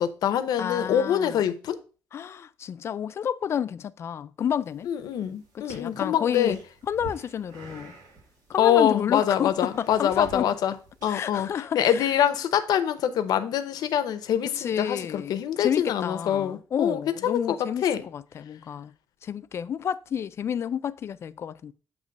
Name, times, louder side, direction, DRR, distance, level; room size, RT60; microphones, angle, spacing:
voice 1, 0.0-1.8 4.9-6.6 8.6-10.7 11.0-11.5 11.7-17.6 17.8-18.0, left 9 dB, 75° left, 0.7 m, -25 dB
voice 2, 0.6-1.5 2.1-4.9 5.5-6.6 6.8-7.9 8.5-10.5 11.1-12.1 14.6-18.9 19.2-21.7, left 8 dB, 40° left, 0.3 m, -30 dB
sound 1, 4.6-11.5, right 3 dB, 75° right, 2.9 m, -48 dB
8.0 x 3.0 x 5.2 m
cardioid pair, 170°, 7 cm